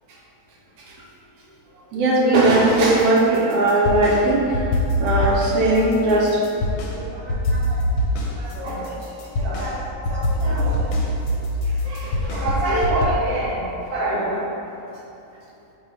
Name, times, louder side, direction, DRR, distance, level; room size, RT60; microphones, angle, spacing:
voice 1, 1.9-4.5 5.0-6.4 6.9-7.8 8.4-8.8 9.4-9.6 10.4-10.8 11.8-14.5, right 2 dB, 85° right, -3 dB, 1.1 m, -20 dB
sound 1, 2.7-4.2 4.5-6.9 7.3-13.1, left 1 dB, 70° left, 0.9 m, -24 dB
voice 2, 8.4-11.0, equal, 35° right, -8 dB, 0.7 m, -36 dB
3.0 x 2.6 x 4.3 m, 2.9 s
omnidirectional pair, 1.6 m